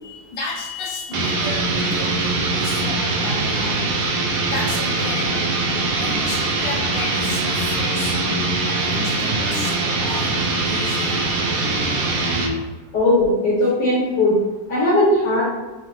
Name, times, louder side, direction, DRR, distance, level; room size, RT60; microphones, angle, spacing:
voice 1, 0.0-5.7 6.0-8.2 8.7-12.5, left 3 dB, 90° left, -3 dB, 1.6 m, -33 dB
sound 1, 1.1-12.6, right 2 dB, 70° right, 0.8 m, -22 dB
voice 2, 12.9-14.4 14.7-15.4, left 1 dB, 70° left, -7 dB, 1.6 m, -18 dB
5.6 x 2.1 x 3.0 m, 1.3 s
omnidirectional pair, 2.0 m